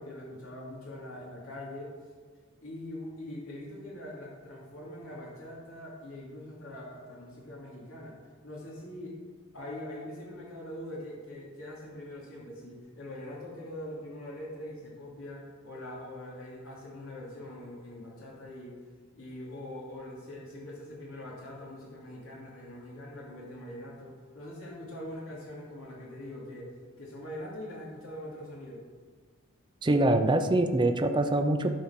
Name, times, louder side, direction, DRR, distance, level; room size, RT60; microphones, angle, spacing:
voice 1, 0.0-1.9 2.6-8.1 8.4-9.2 9.5-18.8 19.1-28.8, left 1 dB, 85° left, -4 dB, 2.6 m, -43 dB
voice 2, 29.8-31.7, right 1 dB, 20° right, 7 dB, 0.6 m, -24 dB
11.5 x 4.5 x 5.8 m, 1.5 s
head